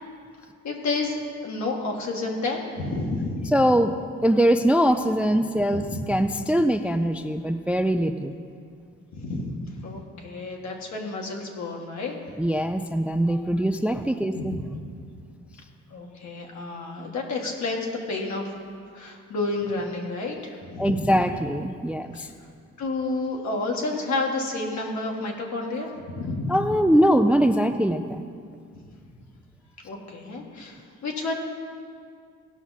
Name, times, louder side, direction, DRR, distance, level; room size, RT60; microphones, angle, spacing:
voice 1, 0.6-3.5 5.7-6.0 9.1-12.2 14.3-14.6 15.9-18.5 18.9-20.9 22.2-22.3 22.8-26.6 29.8-31.4, left 2 dB, 65° left, 0 dB, 1.7 m, -30 dB
voice 2, 3.5-3.9 4.2-5.8 6.1-8.3 12.4-14.5 20.8-22.3 26.5-28.2, equal, 5° right, 8 dB, 0.3 m, -22 dB
16.5 x 5.9 x 4.1 m, 2.2 s
cardioid pair, 90°, 30 cm